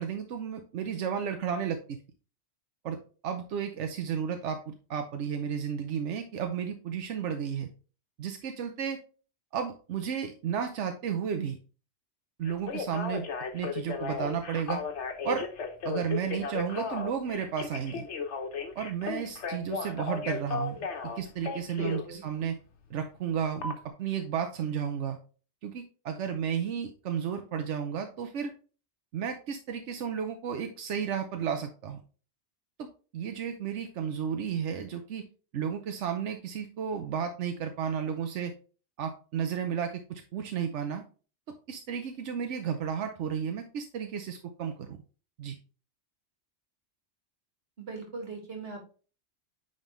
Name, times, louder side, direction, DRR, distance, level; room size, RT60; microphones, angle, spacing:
voice 1, 0.0-2.0 2.8-3.0 3.2-7.7 8.2-9.0 9.5-11.6 12.4-13.3 13.5-14.8 15.2-15.5 15.8-18.0 18.8-22.6 22.9-25.2 25.6-28.5 29.1-32.0 32.8-35.2 35.5-38.5 39.0-41.0 41.7-45.0 45.4-45.6, right 7 dB, 90° right, 5 dB, 1.0 m, -33 dB
Telephone, 12.5-22.0 23.6-23.7, left 5 dB, 75° left, 1.3 m, -35 dB
voice 2, 21.6-22.3 47.8-48.9, right 3 dB, 60° right, 2 dB, 2.2 m, -41 dB
8.9 x 4.0 x 3.1 m, 0.37 s
omnidirectional pair, 1.2 m